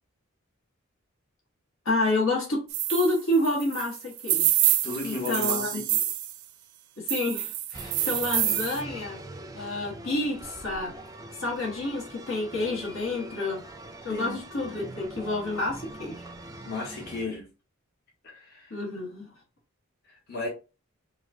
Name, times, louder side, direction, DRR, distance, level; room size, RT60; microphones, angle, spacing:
voice 1, 1.8-4.5 5.0-5.8 7.0-9.3 9.5-11.0 11.4-13.6 14.0-16.2 18.7-19.3, left 2 dB, 65° left, 1.5 m, -29 dB
sound 1, 2.7-6.4 7.1-8.8, right 13 dB, 90° right, 0.5 m, -27 dB
voice 2, 4.8-6.1 14.1-14.3 16.6-17.5 18.2-18.7 20.3-20.5, left 3 dB, 45° left, 1.4 m, -34 dB
sound 2, 7.7-17.3, right 1 dB, 15° right, 0.4 m, -43 dB
4.7 x 2.4 x 2.7 m
head